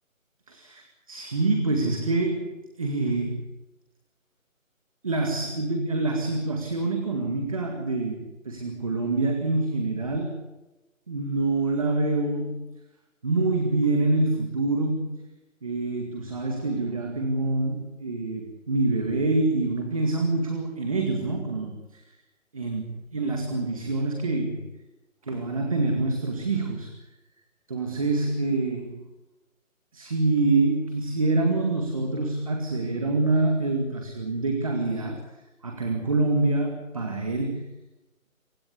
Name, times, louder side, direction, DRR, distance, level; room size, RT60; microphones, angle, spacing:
voice 1, 0.5-3.5 5.0-10.4 11.1-12.6 13.2-15.1 15.6-22.2 22.5-24.7 25.2-26.9 27.7-29.0 29.9-35.2 35.6-37.7, right 2 dB, 25° right, 4 dB, 2.0 m, -26 dB
28.0 x 16.5 x 8.3 m, 1.0 s
figure-of-eight pair, 175°, 42 cm